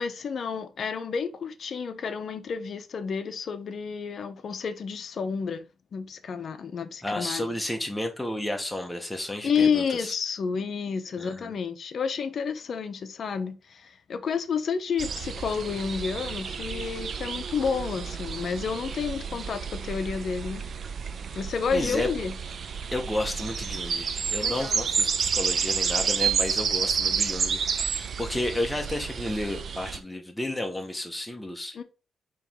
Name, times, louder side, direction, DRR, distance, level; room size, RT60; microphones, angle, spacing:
voice 1, 0.0-5.6 5.9-7.5 9.4-20.6 21.3-22.3 24.4-24.8 31.7-31.8, left 6 dB, 55° left, 0.6 m, -30 dB
voice 2, 7.0-10.2 11.2-11.5 21.7-22.1 22.9-31.8, left 1 dB, 5° left, 0.9 m, -32 dB
sound 1, 15.0-30.0, right 6 dB, 55° right, 0.4 m, -30 dB
4.7 x 3.0 x 3.5 m
cardioid pair, 120°, 0 cm